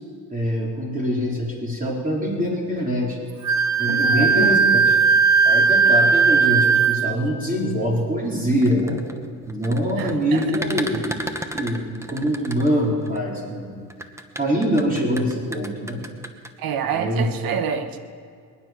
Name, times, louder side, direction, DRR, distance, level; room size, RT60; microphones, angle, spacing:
voice 1, 0.3-3.2 3.8-4.6 5.4-9.0 9.5-11.2 11.5-13.7 14.4-16.0 16.8-17.3, equal, 25° right, 4.0 m, -24 dB
Wind instrument woodwind instrument, 3.4-7.1, right 5 dB, 55° right, 0.9 m, -17 dB
voice 2, 3.9-4.8 10.0-10.4 16.6-18.0, right 7 dB, 85° right, 1.2 m, -28 dB
sound 1, 8.5-13.2 13.9-16.5, right 1 dB, 10° right, 1.1 m, -34 dB
22.0 x 9.9 x 6.0 m
cardioid pair, 95°, 34 cm